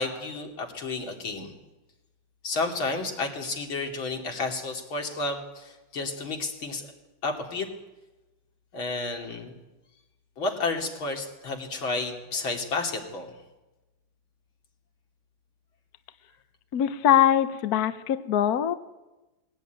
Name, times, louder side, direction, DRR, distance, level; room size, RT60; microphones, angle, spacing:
voice 1, 0.0-1.5 2.4-6.9 7.2-7.7 8.7-9.5 10.4-13.3, left 3 dB, 85° left, 2 dB, 3.7 m, -31 dB
voice 2, 16.7-18.8, left 10 dB, 60° left, 11 dB, 1.2 m, -22 dB
21.5 x 17.0 x 9.3 m, 1.1 s
omnidirectional pair, 2.1 m